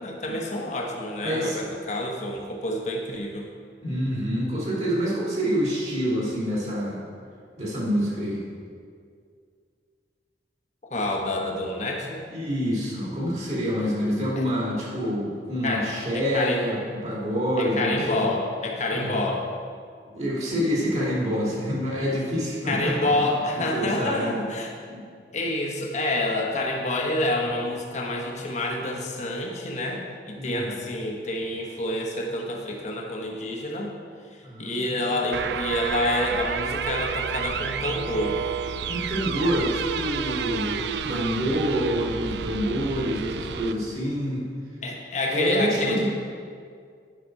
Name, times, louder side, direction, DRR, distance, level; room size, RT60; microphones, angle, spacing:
voice 1, 0.0-3.5 10.8-12.2 14.4-14.5 15.6-16.6 17.6-19.5 22.7-24.7 25.3-33.9 34.3-38.4 44.8-46.0, left 1 dB, 40° left, 0 dB, 1.1 m, -28 dB
voice 2, 1.2-1.6 3.8-7.1 7.6-8.4 12.3-18.3 18.9-19.2 20.1-23.3 23.5-24.3 24.8-25.0 30.4-30.7 34.4-35.2 38.8-44.4 45.3-46.0, equal, 40° right, -5 dB, 2.4 m, -27 dB
sound 1, 35.3-43.7, right 7 dB, 70° right, 0.4 m, -30 dB
10.0 x 5.9 x 4.6 m, 2.2 s
head